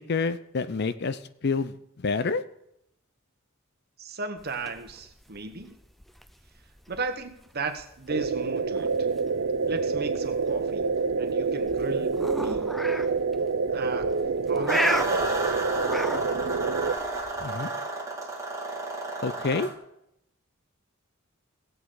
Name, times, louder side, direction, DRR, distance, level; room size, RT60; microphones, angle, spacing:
voice 1, 0.1-2.4 17.4-17.7 19.2-19.7, left 4 dB, 55° left, 14 dB, 0.6 m, -28 dB
voice 2, 4.0-5.8 6.9-8.9 9.7-10.9 11.2-13.0 13.7-14.1 14.5-14.9, right 3 dB, 50° right, 7 dB, 1.3 m, -35 dB
sound 1, 4.4-17.6, equal, ahead, 0.4 m, -36 dB
sound 2, 8.1-17.0, right 4 dB, 80° right, 0.6 m, -27 dB
sound 3, 14.7-19.7, right 2 dB, 15° right, 1.8 m, -32 dB
17.5 x 8.1 x 3.9 m, 0.79 s
head